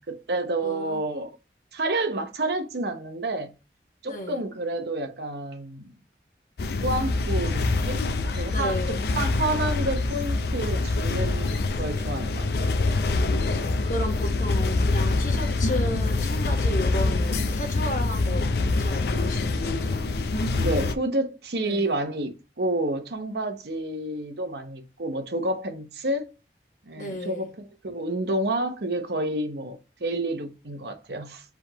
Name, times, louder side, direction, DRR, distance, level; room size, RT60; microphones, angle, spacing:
voice 1, 0.0-1.3 1.7-3.5 4.0-5.9 6.8-8.0 8.3-12.5 20.6-26.3 26.9-31.4, right 2 dB, 70° right, 0.8 m, -29 dB
voice 2, 0.6-1.0 4.1-4.4 8.5-9.0 13.0-18.5 18.8-20.0 21.6-22.0 27.0-27.5, left 1 dB, 45° left, 1.1 m, -34 dB
sound 1, 6.6-20.9, left 3 dB, 70° left, 0.4 m, -25 dB
4.6 x 3.5 x 2.9 m
head